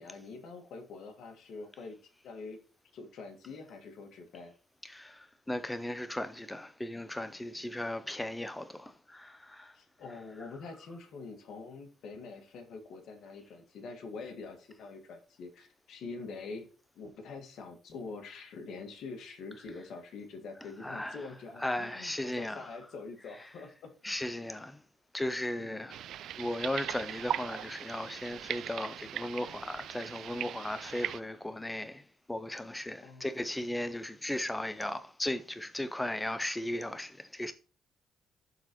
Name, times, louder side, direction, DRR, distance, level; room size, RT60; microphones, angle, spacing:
voice 1, 0.0-2.0 2.2-2.6 2.9-4.5 9.7-16.7 17.0-24.1 25.7-25.9 33.0-33.3, left 4 dB, 75° left, 1.7 m, -45 dB
voice 2, 4.8-9.8 20.8-21.3 21.6-22.8 24.0-24.8 25.1-26.0 26.4-37.5, left 1 dB, 10° left, 0.6 m, -36 dB
sound 1, 25.9-31.2, right 11 dB, 75° right, 0.3 m, -39 dB
12.0 x 4.1 x 3.0 m
cardioid pair, 90°, 0 cm